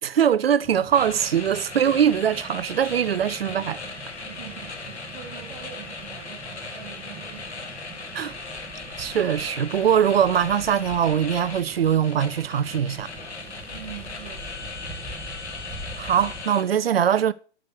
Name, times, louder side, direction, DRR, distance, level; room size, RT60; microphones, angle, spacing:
voice 1, 0.0-3.8 8.1-8.3 9.0-13.1 16.0-17.3, right 9 dB, 60° right, 0.6 m, -22 dB
sound 1, 0.6-16.4, right 2 dB, 5° right, 1.7 m, -43 dB
sound 2, 0.9-16.6, left 4 dB, 70° left, 2.2 m, -38 dB
voice 2, 4.2-8.5 13.7-14.9, right 9 dB, 40° right, 2.4 m, -44 dB
9.8 x 6.3 x 6.0 m
figure-of-eight pair, 140°, 35 cm